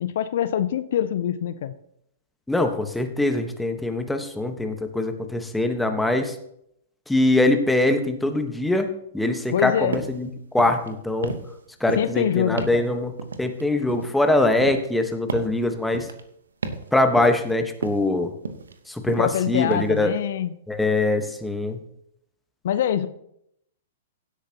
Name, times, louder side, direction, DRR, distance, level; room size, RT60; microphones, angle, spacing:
voice 1, 0.0-1.7 9.5-10.0 11.9-12.9 19.2-20.5 22.6-23.1, left 10 dB, 60° left, 13 dB, 0.6 m, -24 dB
voice 2, 2.5-6.3 7.1-8.9 9.1-10.3 10.5-11.4 11.8-13.1 13.4-16.1 16.9-18.3 18.9-20.1 20.7-21.8, left 2 dB, 5° left, 6 dB, 1.2 m, -23 dB
sound 1, 9.9-10.2 10.5-10.9 11.2-11.6 11.9-12.2 12.6-12.8 13.2-14.2 14.6-14.9 15.3-15.6 15.9-16.2 16.6-16.9 17.2-17.5 17.8-18.1 18.4-18.8 19.1-19.4 19.7-20.0, right 4 dB, 80° right, 1.0 m, -32 dB
16.5 x 8.3 x 2.9 m, 0.75 s
figure-of-eight pair, 110°, 0 cm